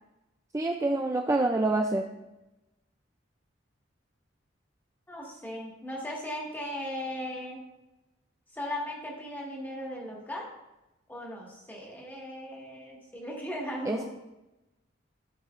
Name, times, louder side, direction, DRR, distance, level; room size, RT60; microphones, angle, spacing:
voice 1, 0.5-2.1 13.9-14.0, right 2 dB, 15° right, 3 dB, 0.4 m, -26 dB
voice 2, 5.1-7.6 8.5-10.5 11.1-14.0, equal, 10° left, -3 dB, 1.8 m, -37 dB
13.5 x 5.2 x 2.5 m, 0.97 s
head